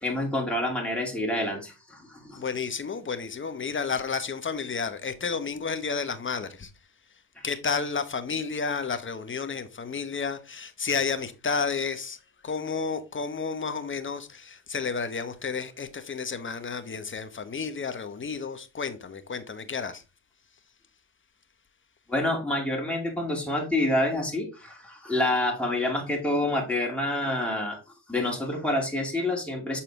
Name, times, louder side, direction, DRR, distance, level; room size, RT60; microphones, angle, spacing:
voice 1, 0.0-2.4 22.1-27.8 28.1-29.8, left 1 dB, ahead, 2.5 m, -27 dB
voice 2, 2.3-6.7 7.4-12.2 12.4-20.0, left 5 dB, 25° left, 1.0 m, -31 dB
6.7 x 4.3 x 3.7 m
supercardioid pair, 65°, 47 cm